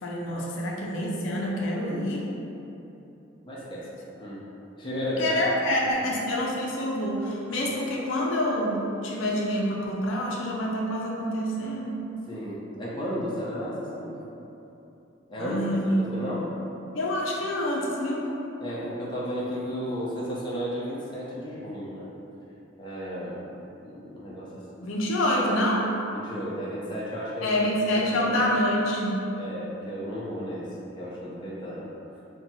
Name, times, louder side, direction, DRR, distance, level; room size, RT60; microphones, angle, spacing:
voice 1, 0.0-2.3 5.2-12.0 15.4-16.0 16.9-18.3 24.8-25.9 27.4-29.2, left 1 dB, 75° left, -3 dB, 0.5 m, -27 dB
voice 2, 3.4-4.4 4.8-5.4 5.8-6.0 12.3-14.1 15.3-15.6 15.9-16.5 18.6-22.1 22.8-23.4 23.8-24.8 26.1-27.6 28.0-28.4 29.3-31.9, equal, 25° left, -7 dB, 0.5 m, -34 dB
2.6 x 2.2 x 4.0 m, 2.9 s
head